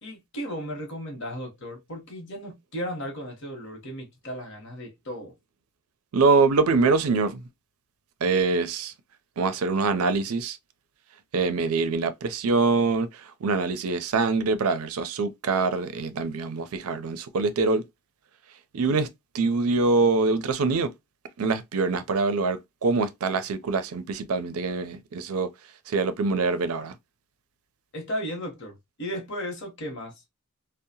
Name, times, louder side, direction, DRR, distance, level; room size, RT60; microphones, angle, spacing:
voice 1, 0.0-5.3 27.9-30.2, equal, 55° left, 0.9 m, -35 dB
voice 2, 6.1-7.4 8.2-8.9 9.4-10.6 11.3-13.1 13.4-17.8 18.7-19.1 19.3-20.9 21.4-25.5 25.9-26.9, right 4 dB, 85° right, 0.4 m, -24 dB
2.7 x 2.0 x 2.7 m
head